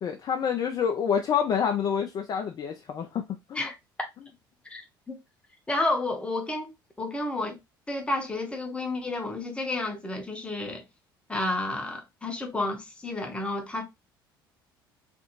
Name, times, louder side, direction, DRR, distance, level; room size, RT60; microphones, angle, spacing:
voice 1, 0.0-3.2 3.5-3.7, left 7 dB, 35° left, 0.4 m, -27 dB
voice 2, 5.7-7.6 7.9-10.8 11.3-13.8, left 2 dB, 10° left, 0.8 m, -31 dB
2.5 x 2.5 x 2.7 m
figure-of-eight pair, 55°, 12 cm